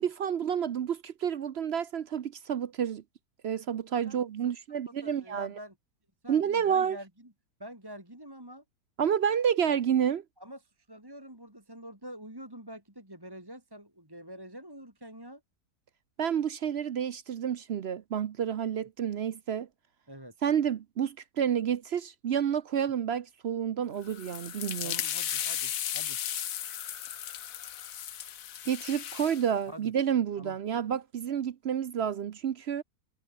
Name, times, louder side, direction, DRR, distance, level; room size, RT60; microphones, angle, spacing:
voice 1, 0.0-3.0 3.4-5.5 6.3-7.0 9.0-10.2 16.2-19.7 20.4-25.0 28.7-32.8, right 8 dB, 55° right, 0.7 m, -29 dB
voice 2, 5.0-5.7 6.2-7.3 7.6-8.6 10.4-15.4 20.1-20.3 24.8-26.2 29.7-29.9 30.4-30.6, equal, 15° right, 3.5 m, -46 dB
sound 1, 24.0-29.5, left 10 dB, 60° left, 1.3 m, -35 dB
omnidirectional pair, 1.7 m